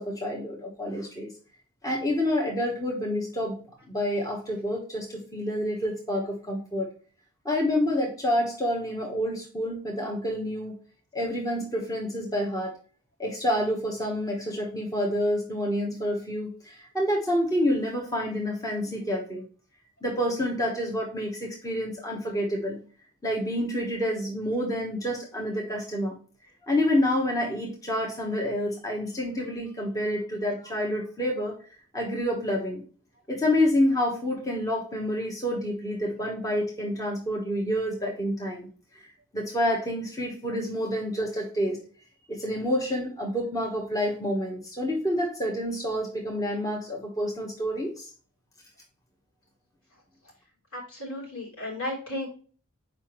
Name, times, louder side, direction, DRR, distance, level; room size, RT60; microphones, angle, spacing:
voice 1, 0.0-1.3 1.8-3.6 3.9-6.9 7.4-10.8 11.1-12.7 13.2-19.4 20.0-22.8 23.2-26.2 26.7-31.5 31.9-32.8 33.3-38.7 39.3-41.8 42.3-48.1, left 1 dB, 15° left, -1 dB, 1.2 m, -28 dB
voice 2, 50.7-52.3, left 1 dB, 70° left, -2 dB, 3.3 m, -34 dB
6.8 x 5.1 x 3.0 m, 0.40 s
head